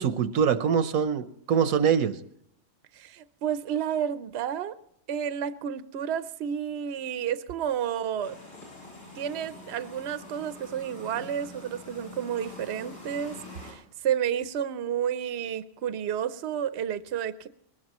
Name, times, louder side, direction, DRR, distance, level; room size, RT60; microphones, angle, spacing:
voice 1, 0.0-2.2, right 7 dB, 85° right, 12 dB, 1.3 m, -24 dB
voice 2, 2.9-4.7 5.1-8.3 9.2-17.5, right 9 dB, 55° right, 12 dB, 0.9 m, -31 dB
sound 1, 8.2-13.7, left 2 dB, 80° left, 7.6 m, -45 dB
21.5 x 19.0 x 3.0 m, 0.74 s
omnidirectional pair, 1.4 m